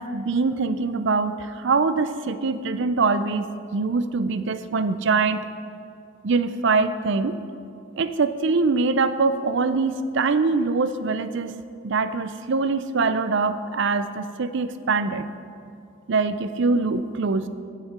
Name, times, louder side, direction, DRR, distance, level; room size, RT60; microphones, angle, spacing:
voice 1, 0.0-5.5 6.2-7.4 8.0-15.3 16.1-17.5, right 4 dB, 60° right, 12 dB, 0.5 m, -23 dB
8.7 x 7.2 x 8.0 m, 2.4 s
head